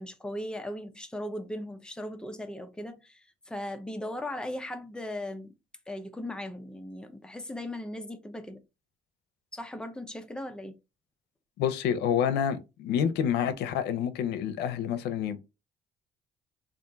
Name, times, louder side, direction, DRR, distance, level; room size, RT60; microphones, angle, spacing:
voice 1, 0.0-5.6 5.9-8.6 9.5-10.7, left 1 dB, 5° left, 0.6 m, -38 dB
voice 2, 11.6-15.4, left 8 dB, 80° left, 0.6 m, -28 dB
3.5 x 2.5 x 3.9 m
cardioid pair, 110°, 17 cm